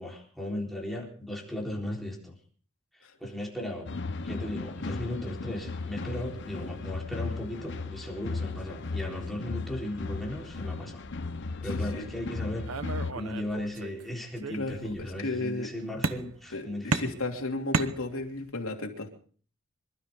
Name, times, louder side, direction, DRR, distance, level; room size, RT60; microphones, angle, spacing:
voice 1, 0.0-2.4 2.9-11.0 11.6-12.7 13.1-17.1, left 1 dB, ahead, -1 dB, 3.9 m, -36 dB
sound 1, 3.9-13.1, left 3 dB, 60° left, 0.9 m, -36 dB
voice 2, 11.7-12.1 14.5-15.7 16.5-19.1, left 2 dB, 90° left, 1 dB, 3.0 m, -34 dB
sound 2, 12.7-14.0 14.4-15.1 16.0-16.5 16.9-18.5, right 3 dB, 90° right, 1.0 m, -33 dB
25.5 x 12.5 x 3.7 m, 0.44 s
head